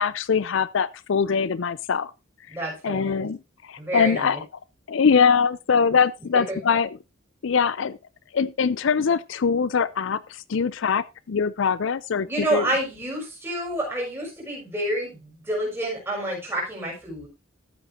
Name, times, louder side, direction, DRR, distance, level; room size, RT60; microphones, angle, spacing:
voice 1, 0.0-2.1 2.8-3.4 3.6-4.4 4.9-6.9 7.4-8.0 8.3-12.7, left 6 dB, 60° left, 0.5 m, -22 dB
voice 2, 2.5-3.3 3.8-4.4 6.3-6.6 12.3-17.3, right 1 dB, 10° right, 6.1 m, -29 dB
14.0 x 8.6 x 2.7 m
head